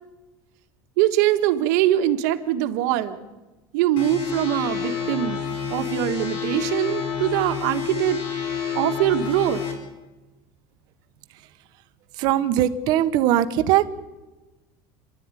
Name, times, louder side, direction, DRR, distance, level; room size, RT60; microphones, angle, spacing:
voice 1, 1.0-3.2 3.7-5.4 5.7-8.2 8.7-9.6, right 12 dB, 65° right, 6 dB, 1.6 m, -22 dB
sound 1, 4.0-9.7, left 7 dB, 55° left, 5.0 m, -29 dB
voice 2, 12.2-13.8, right 12 dB, 45° right, 10 dB, 1.2 m, -20 dB
29.0 x 12.0 x 9.9 m, 1.1 s
cardioid pair, 175°, 10 cm